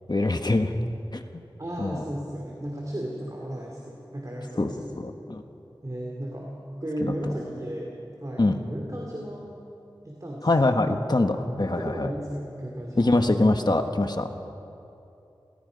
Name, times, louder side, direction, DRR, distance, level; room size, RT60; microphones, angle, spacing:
voice 1, 0.1-0.8 1.1-1.4 1.8-2.0 4.6-5.4 7.0-7.1 8.4-8.6 10.4-12.1 13.0-14.3, left 2 dB, 55° left, 6 dB, 1.3 m, -24 dB
voice 2, 1.6-4.9 5.8-6.5 6.8-9.5 10.0-10.7 11.8-13.2, right 1 dB, 40° right, -2 dB, 3.0 m, -34 dB
28.0 x 18.5 x 5.3 m, 2.8 s
wide cardioid pair, 55°, 9 cm